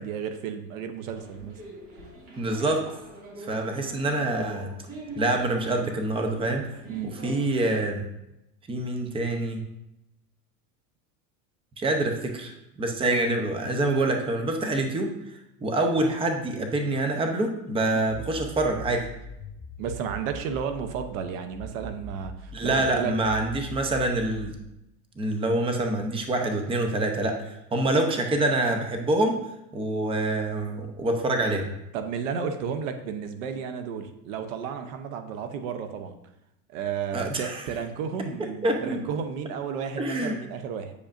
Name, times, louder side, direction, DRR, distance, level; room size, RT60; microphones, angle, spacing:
voice 1, 0.0-1.6 6.9-7.1 17.9-18.1 19.8-23.1 31.9-36.1 36.7-40.9, right 7 dB, 80° right, 8 dB, 0.8 m, -32 dB
sound 1, 1.1-7.8, right 1 dB, 35° right, 2.3 m, -43 dB
voice 2, 2.4-2.8 3.5-4.7 5.2-6.7 7.2-8.0 8.7-9.6 11.8-15.1 15.6-19.1 22.5-24.5 25.2-27.4 27.7-29.4 29.7-31.7 37.1-37.6 38.6-39.0 40.0-40.4, right 2 dB, 15° right, 4 dB, 0.7 m, -26 dB
sound 2, 18.1-21.1 21.5-24.5, equal, 25° left, 0.9 m, -42 dB
8.2 x 5.1 x 2.6 m, 0.87 s
supercardioid pair, 125°, 39 cm